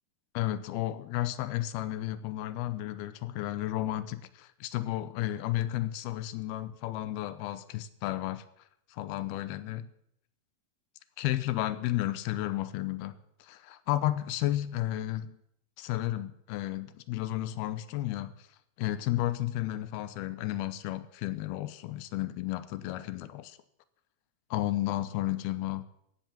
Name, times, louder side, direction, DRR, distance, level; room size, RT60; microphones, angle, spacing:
voice 1, 0.3-8.4 8.9-9.9 11.2-15.4 15.8-18.3 18.8-23.6 24.5-25.8, left 14 dB, 85° left, 14 dB, 2.7 m, -32 dB
15.0 x 10.0 x 7.6 m, 0.74 s
omnidirectional pair, 4.5 m